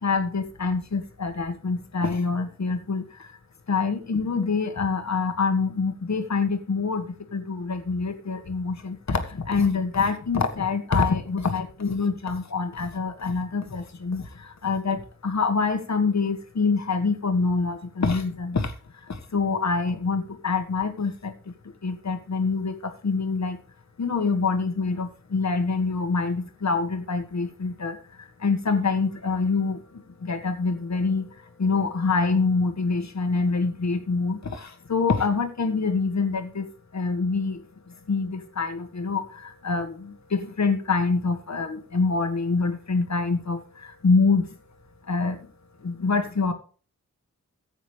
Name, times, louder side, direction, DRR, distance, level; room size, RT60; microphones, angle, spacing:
voice 1, 0.0-3.4 3.7-23.6 24.0-36.7 36.9-44.5 45.1-45.4 45.8-46.5, left 4 dB, 60° left, 7 dB, 1.7 m, -26 dB
15.0 x 8.1 x 3.3 m, 0.38 s
wide cardioid pair, 80°, 32 cm